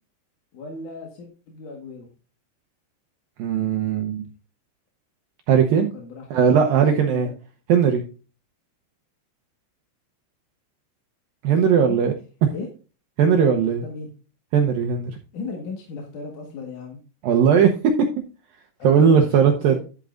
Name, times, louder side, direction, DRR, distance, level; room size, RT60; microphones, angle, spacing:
voice 1, 0.5-2.1 5.9-7.3 11.5-11.6 12.5-12.7 13.8-14.1 15.3-17.0 17.5-17.7 18.8-19.8, left 4 dB, 55° left, 1 dB, 2.6 m, -36 dB
voice 2, 3.4-4.3 5.5-5.9 6.3-7.3 7.7-8.0 11.4-12.1 13.2-13.8 14.5-15.2 17.2-17.7 18.8-19.8, right 7 dB, 75° right, 3 dB, 2.2 m, -18 dB
11.0 x 8.3 x 2.5 m, 0.34 s
omnidirectional pair, 5.1 m